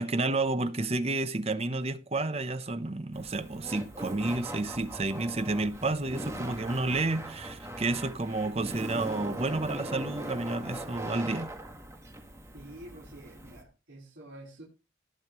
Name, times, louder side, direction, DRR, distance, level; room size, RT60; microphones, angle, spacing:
voice 1, 0.0-11.5, right 2 dB, 30° right, 0.7 m, -30 dB
Laughter, 3.1-13.6, right 1 dB, 15° right, 1.6 m, -40 dB
voice 2, 12.5-14.6, right 1 dB, 70° right, 3.9 m, -48 dB
19.0 x 6.4 x 3.1 m
head